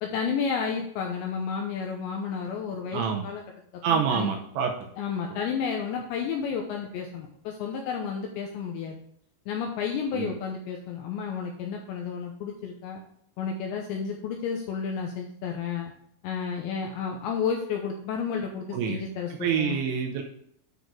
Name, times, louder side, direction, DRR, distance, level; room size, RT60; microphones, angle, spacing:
voice 1, 0.0-3.4 3.9-4.3 5.0-9.0 9.5-13.0 13.4-15.9 16.2-19.8, left 6 dB, 80° left, 2 dB, 2.6 m, -31 dB
voice 2, 2.9-3.3 3.8-4.7 5.3-5.4 10.1-10.3 18.7-19.0 19.4-20.2, right 7 dB, 80° right, 2 dB, 2.7 m, -27 dB
9.2 x 4.2 x 4.6 m, 0.72 s
omnidirectional pair, 5.9 m